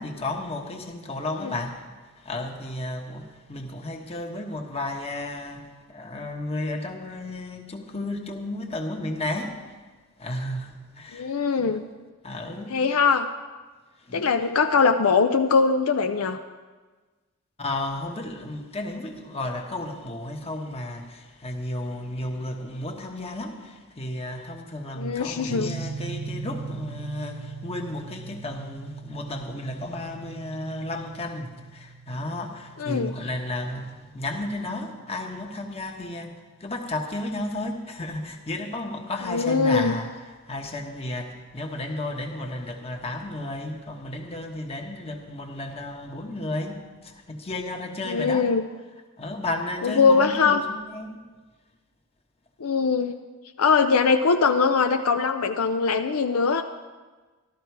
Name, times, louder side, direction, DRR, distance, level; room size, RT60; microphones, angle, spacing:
voice 1, 0.0-1.9 2.1-9.6 10.2-11.3 11.6-11.8 12.2-12.9 14.1-14.2 17.6-36.3 36.6-40.1 40.4-48.5 49.2-51.2, left 2 dB, 25° left, 3 dB, 1.2 m, -33 dB
voice 2, 11.1-11.8 12.7-13.3 14.1-16.4 24.9-25.7 32.8-33.1 39.3-40.0 48.1-48.6 49.8-50.6 52.6-53.2 53.6-56.6, left 5 dB, 65° left, 6 dB, 0.5 m, -21 dB
sound 1, 25.5-35.6, right 4 dB, 40° right, 0.6 m, -39 dB
13.0 x 12.5 x 4.7 m, 1.3 s
head